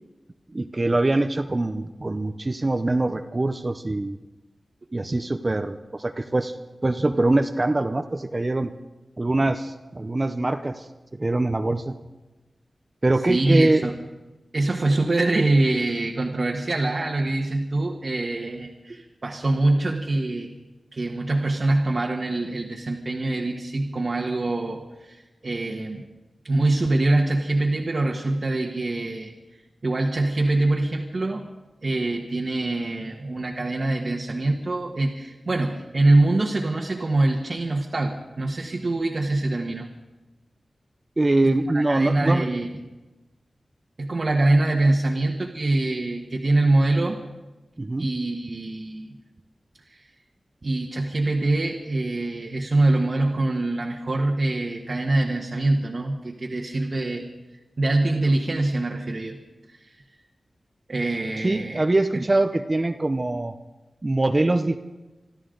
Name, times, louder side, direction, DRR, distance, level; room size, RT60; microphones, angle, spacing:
voice 1, 0.5-4.2 4.9-6.5 6.8-8.7 9.2-10.9 11.1-11.9 13.0-13.8 41.2-42.5 47.8-48.1 61.4-63.5 64.0-64.8, right 2 dB, 30° right, 8 dB, 0.7 m, -23 dB
voice 2, 13.2-14.0 14.5-20.5 20.9-26.0 26.4-29.3 29.8-31.4 31.8-39.9 41.4-42.7 44.0-47.2 48.0-49.2 49.9-50.0 50.6-57.3 57.8-59.4 59.7-59.9 60.9-61.8 62.1-62.2, right 2 dB, 50° right, -1 dB, 1.5 m, -24 dB
26.0 x 13.0 x 3.9 m, 1.1 s
wide cardioid pair, 105°, 0 cm